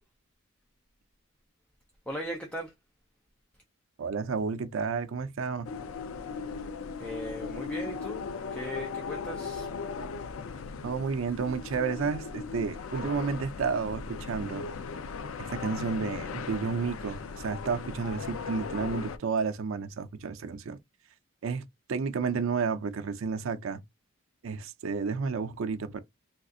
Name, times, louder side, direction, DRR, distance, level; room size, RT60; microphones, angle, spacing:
voice 1, 2.1-2.7 7.0-9.7, equal, 5° left, 0.4 m, -38 dB
voice 2, 4.0-5.7 10.8-14.7 15.4-20.8 21.4-21.6 21.9-23.8 24.4-26.0, right 5 dB, 65° right, 0.4 m, -31 dB
sound 1, 5.6-19.2, left 5 dB, 70° left, 0.4 m, -38 dB
3.5 x 2.4 x 2.5 m
head